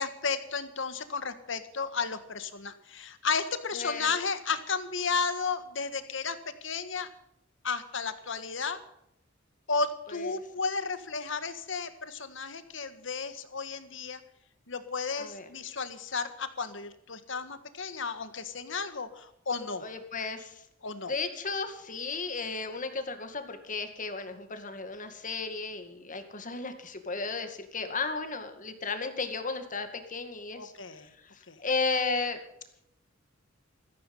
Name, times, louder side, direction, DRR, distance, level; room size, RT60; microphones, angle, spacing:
voice 1, 0.0-6.4 6.6-7.1 7.6-8.8 9.7-14.2 14.7-19.8 20.8-21.1 30.5-31.1 31.5-31.6, left 5 dB, 70° left, 11 dB, 1.7 m, -33 dB
voice 2, 3.7-4.1 10.1-10.3 15.2-15.5 19.8-20.6 21.0-30.7 31.6-32.4, left 4 dB, 40° left, 8 dB, 2.2 m, -34 dB
15.0 x 15.0 x 5.5 m, 0.78 s
head